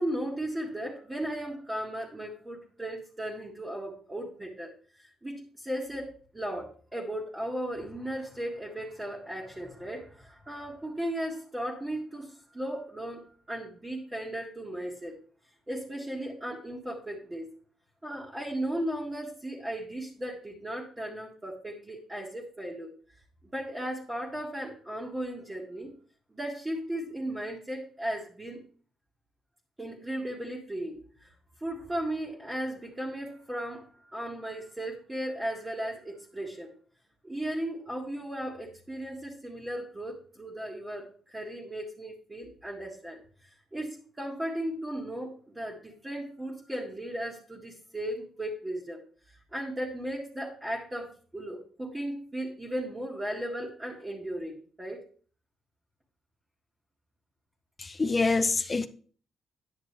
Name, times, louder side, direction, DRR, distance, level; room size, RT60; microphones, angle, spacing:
voice 1, 0.0-4.7 5.0-15.2 15.7-17.5 18.0-22.9 23.5-25.9 26.3-28.6 29.8-31.3 31.6-36.7 37.2-43.2 43.7-49.0 49.5-55.0, right 1 dB, 15° right, 1.8 m, -36 dB
voice 2, 57.8-58.9, left 3 dB, 30° left, 0.7 m, -26 dB
9.6 x 6.6 x 3.3 m
cardioid pair, 90°, 0 cm